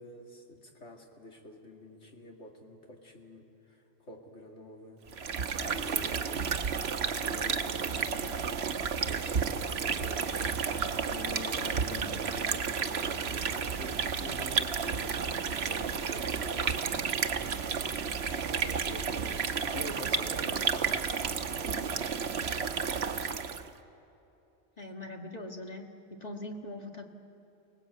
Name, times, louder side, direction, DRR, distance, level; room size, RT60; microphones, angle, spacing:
voice 1, 0.0-5.0 5.6-6.5 6.9-16.9 18.2-19.1 19.7-22.3, left 1 dB, 90° left, 1 dB, 2.9 m, -47 dB
sound 1, 5.1-23.7, right 6 dB, 65° right, 1.1 m, -32 dB
voice 2, 11.9-12.3 24.8-27.0, left 1 dB, 35° left, 2 dB, 1.7 m, -42 dB
sound 2, 14.9-21.3, right 1 dB, 5° left, 7.2 m, -54 dB
29.0 x 19.0 x 8.3 m, 2.9 s
omnidirectional pair, 1.2 m